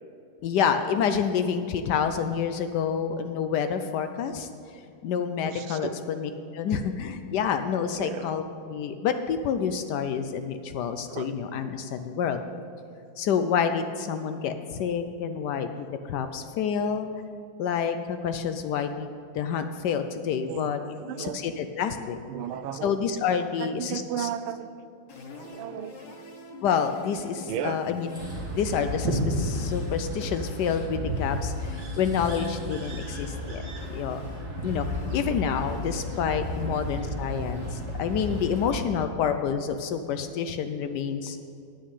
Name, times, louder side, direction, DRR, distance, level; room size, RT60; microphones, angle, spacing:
voice 1, 0.4-4.5 5.0-8.4 8.7-12.4 13.2-17.1 17.6-19.1 19.3-20.8 21.2-22.2 22.8-24.3 26.6-28.1 28.5-33.6 33.9-34.2 34.6-41.4, left 7 dB, 75° left, 8 dB, 0.9 m, -28 dB
voice 2, 5.4-6.0 8.0-8.3 11.1-11.3 20.5-21.4 22.3-23.0 23.6-24.7 25.3-26.2 27.5-27.8 36.6-36.8, right 9 dB, 85° right, 11 dB, 1.5 m, -35 dB
sound 1, 25.1-38.7, left 4 dB, 55° left, 1.7 m, -46 dB
sound 2, 28.0-28.6 29.5-30.9 31.5-33.2, equal, ahead, 2.0 m, -55 dB
sound 3, 28.2-38.8, equal, 50° right, 1.9 m, -32 dB
9.4 x 6.3 x 8.3 m, 2.5 s
omnidirectional pair, 2.3 m